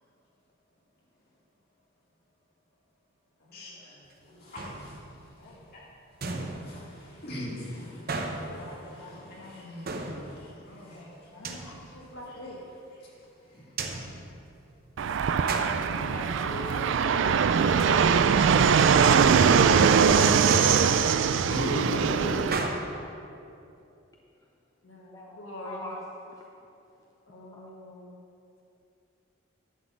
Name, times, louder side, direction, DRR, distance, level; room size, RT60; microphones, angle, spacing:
voice 1, 3.4-3.9 4.2-4.5 5.1-5.7 7.1-7.6 7.9-10.2 10.7-12.6 15.8-18.3 24.8-25.9 27.3-28.1, left 1 dB, 75° left, -3 dB, 1.9 m, -44 dB
voice 2, 4.4-5.0 5.7-5.9 6.2-11.0 13.5-13.7 21.3-22.4, equal, 50° left, -6 dB, 2.5 m, -38 dB
sound 1, 4.6-5.4 6.2-7.3 8.1-9.1 9.9-10.8 11.4-12.2 13.8-14.9 15.5-16.5 16.9-17.4 17.8-18.6 20.5-21.4 22.5-22.8, right 3 dB, 50° right, 0.8 m, -36 dB
Fixed-wing aircraft airplane, 15.0-22.6, right 6 dB, 65° right, 0.3 m, -21 dB
voice 3, 25.6-26.0 26.4-26.5 27.5-27.7, left 1 dB, 15° left, -1 dB, 0.6 m, -46 dB
11.0 x 4.2 x 7.2 m, 2.6 s
head